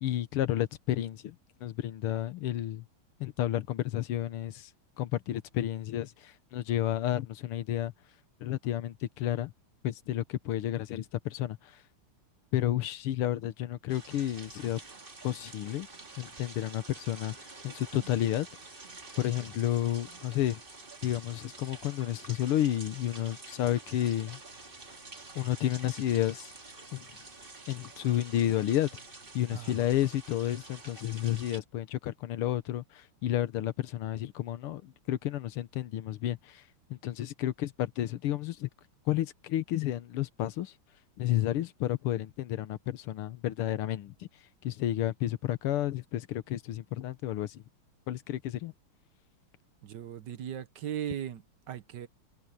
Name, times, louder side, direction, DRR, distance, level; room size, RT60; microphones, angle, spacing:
voice 1, 0.0-1.4 1.6-2.9 3.2-4.7 5.0-7.9 8.4-9.5 9.8-11.8 12.5-14.8 15.2-15.9 16.2-17.4 17.6-18.5 19.2-20.6 21.0-24.4 25.4-26.5 26.9-27.1 27.7-28.9 29.4-36.6 36.9-38.7 39.1-40.7 41.2-44.3 44.6-47.6 48.1-48.7, left 13 dB, 90° left, 1.9 m, -31 dB
sound 1, 13.9-31.6, right 3 dB, 25° right, 2.0 m, -48 dB
voice 2, 29.5-29.9 49.8-52.1, right 10 dB, 60° right, 1.4 m, -38 dB
omnidirectional pair, 2.4 m